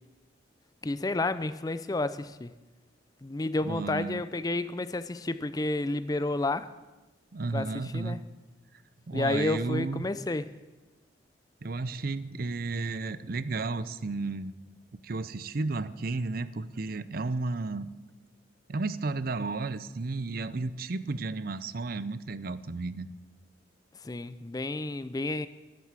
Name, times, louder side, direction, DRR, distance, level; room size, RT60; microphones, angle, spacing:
voice 1, 0.8-2.5 3.2-6.7 7.5-8.2 9.1-10.5 24.0-25.5, left 2 dB, 20° left, 14 dB, 0.4 m, -31 dB
voice 2, 3.6-4.2 7.3-8.2 9.1-10.1 11.6-14.5 15.0-17.9 18.7-23.1, right 3 dB, 50° right, 15 dB, 0.6 m, -33 dB
12.0 x 12.0 x 7.4 m, 1.1 s
head